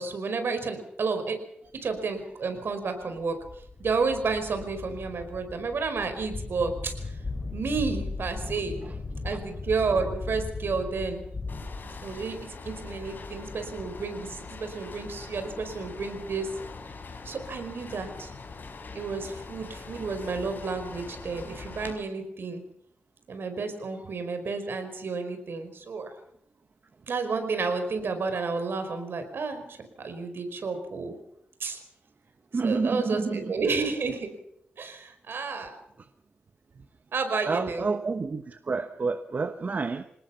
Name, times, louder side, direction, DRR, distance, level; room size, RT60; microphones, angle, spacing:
voice 1, 0.0-1.4 1.8-3.4 3.8-7.2 7.5-8.8 9.2-11.2 12.0-12.4 12.6-16.5 17.2-18.3 18.9-22.6 23.3-26.1 27.1-31.1 31.6-31.8 32.6-34.3 34.8-35.7 37.1-37.9, right 4 dB, 70° right, 8 dB, 4.9 m, -31 dB
sound 1, 2.0-2.1 2.7-2.8 3.2-14.2, left 3 dB, 40° left, 5.7 m, -38 dB
sound 2, 11.5-21.9, left 4 dB, 55° left, 5.3 m, -42 dB
voice 2, 32.5-33.5 37.5-40.0, right 4 dB, 45° right, 9 dB, 1.2 m, -29 dB
27.5 x 19.0 x 5.9 m, 0.74 s
wide cardioid pair, 95°, 4 cm